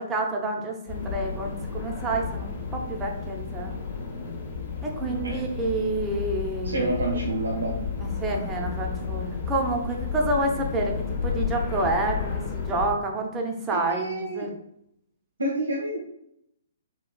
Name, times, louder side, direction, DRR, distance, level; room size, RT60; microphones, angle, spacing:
voice 1, 0.0-3.8 4.8-7.2 8.0-14.5, right 2 dB, 15° right, 1 dB, 0.6 m, -29 dB
sound 1, 0.9-12.9, left 6 dB, 40° left, 0.8 m, -32 dB
voice 2, 5.0-5.4 6.6-7.9 13.7-14.5 15.4-16.1, right 1 dB, 75° right, -3 dB, 0.6 m, -29 dB
4.2 x 2.3 x 2.2 m, 0.76 s
figure-of-eight pair, 125°, 0 cm